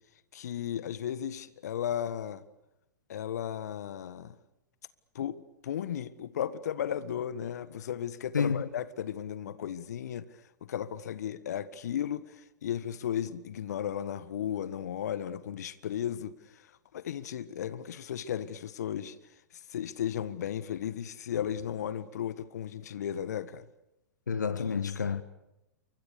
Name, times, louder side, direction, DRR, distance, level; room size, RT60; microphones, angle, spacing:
voice 1, 0.3-2.4 3.1-4.3 5.1-10.2 10.7-16.3 16.9-19.1 19.7-23.6, left 9 dB, 65° left, 1.6 m, -35 dB
voice 2, 24.3-25.2, left 6 dB, 80° left, 1.5 m, -29 dB
29.0 x 24.5 x 6.9 m
figure-of-eight pair, 110°, 10 cm